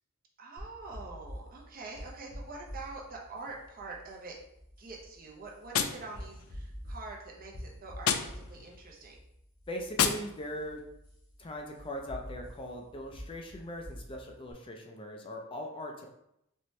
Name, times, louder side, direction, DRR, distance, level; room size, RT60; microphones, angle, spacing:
voice 1, 0.4-4.3 4.8-9.2, right 3 dB, 45° right, -2 dB, 0.9 m, -45 dB
sound 1, 0.6-14.5, equal, 45° left, 1.4 m, -48 dB
Gunshot gunfire, 5.7-6.8 8.0-8.8 9.9-10.8, left 8 dB, 90° left, 0.4 m, -32 dB
voice 2, 9.7-10.8 11.4-16.1, equal, 25° left, 2 dB, 0.4 m, -40 dB
4.4 x 3.0 x 3.1 m, 0.80 s
head